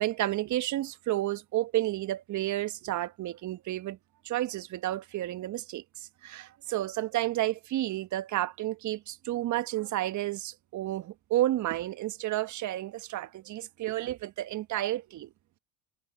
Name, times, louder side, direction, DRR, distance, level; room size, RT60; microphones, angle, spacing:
voice 1, 0.0-4.0 4.2-15.3, right 15 dB, 40° right, 1.5 m, -31 dB
hypercardioid pair, 85°, 47 cm